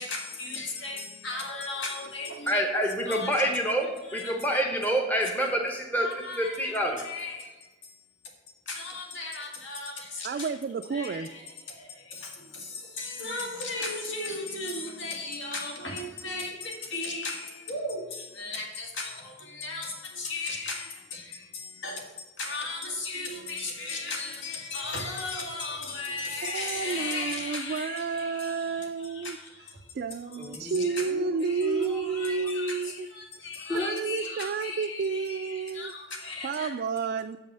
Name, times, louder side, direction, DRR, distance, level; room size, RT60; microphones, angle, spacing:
voice 1, 0.0-2.6 3.1-3.5 4.0-4.3 6.0-8.3 8.7-10.5 10.9-29.9 30.2-31.1 31.4-36.7, left 3 dB, 70° left, 1 dB, 1.9 m, -36 dB
voice 2, 2.5-3.9 4.1-6.1 6.4-7.0 30.4-31.3 31.6-32.0 33.7-33.9, equal, 10° left, 2 dB, 0.8 m, -28 dB
voice 3, 10.2-11.3 26.5-29.4 29.9-33.1 33.7-35.9 36.4-37.4, right 5 dB, 50° right, 7 dB, 0.3 m, -30 dB
7.0 x 5.4 x 7.4 m, 1.3 s
head